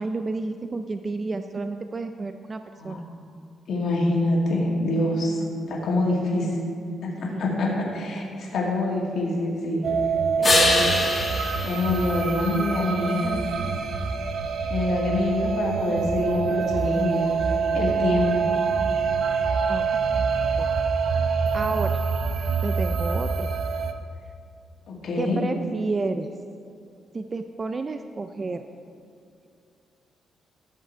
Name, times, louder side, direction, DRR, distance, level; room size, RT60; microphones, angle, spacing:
voice 1, 0.0-3.0 7.3-7.4 19.7-20.2 20.6-20.7 21.5-22.0 22.6-23.5 25.2-26.3 27.1-28.6, right 3 dB, 30° right, 8 dB, 0.4 m, -31 dB
voice 2, 3.7-5.4 5.7-6.6 7.0-9.9 10.4-11.0 11.6-13.5 14.7-18.5 24.9-25.4, left 2 dB, 65° left, -3 dB, 2.1 m, -25 dB
sound 1, 9.8-23.9, right 5 dB, 65° right, 0.7 m, -25 dB
sound 2, 10.4-13.0 18.7-22.7, left 2 dB, 30° left, 1.8 m, -28 dB
14.0 x 6.5 x 4.5 m, 2.4 s
cardioid pair, 115°, 0 cm